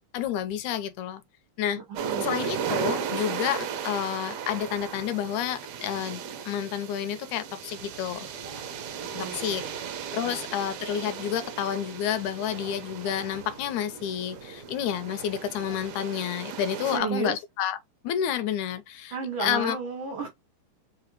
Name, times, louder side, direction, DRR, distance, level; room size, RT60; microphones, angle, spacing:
voice 1, 0.1-1.2 1.6-1.8 2.2-8.3 9.1-9.6 10.1-17.8 18.0-19.1 19.4-19.8, left 10 dB, 80° left, 1.9 m, -30 dB
voice 2, 1.9-2.3 9.0-9.8 10.2-10.5 16.8-17.4 19.1-20.3, right 5 dB, 90° right, 1.0 m, -33 dB
sound 1, 2.0-17.0, right 7 dB, 70° right, 1.7 m, -36 dB
sound 2, 7.7-16.0, right 4 dB, 50° right, 1.1 m, -50 dB
5.0 x 2.3 x 3.0 m
omnidirectional pair, 3.4 m